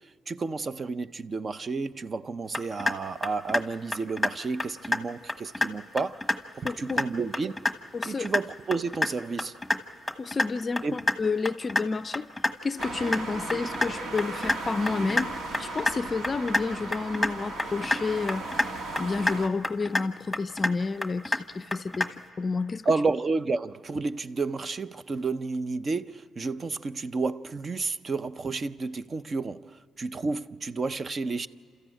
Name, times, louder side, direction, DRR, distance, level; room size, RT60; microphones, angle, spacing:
voice 1, 0.3-6.3 6.5-7.5 8.0-9.5 10.8-11.0 22.9-31.5, right 4 dB, 35° right, 0.6 m, -31 dB
sound 1, 2.5-2.9 3.2-3.6 3.9-4.3 4.6-5.0 5.3-5.7 6.0-6.4 6.7-7.0 7.3-7.7 8.0-8.4 8.7-9.1 9.4-9.8 10.1-10.5 10.8-11.1 11.4-11.8 12.1-12.5 12.8-13.2 13.5-13.9 14.2-14.6 14.9-15.3 15.5-15.9 16.2-16.6 16.9-17.3 17.6-18.0 18.3-18.7 19.0-19.4 19.6-20.0 20.3-20.7 21.0-21.4 21.7-22.1, left 2 dB, 5° left, 1.3 m, -26 dB
voice 2, 6.6-7.0 7.9-8.3 10.2-12.3 12.6-18.7 19.0-22.9, left 4 dB, 35° left, 0.4 m, -30 dB
sound 2, 12.8-19.5, right 2 dB, 70° right, 2.0 m, -36 dB
29.0 x 14.0 x 8.9 m
cardioid pair, 90°, 0 cm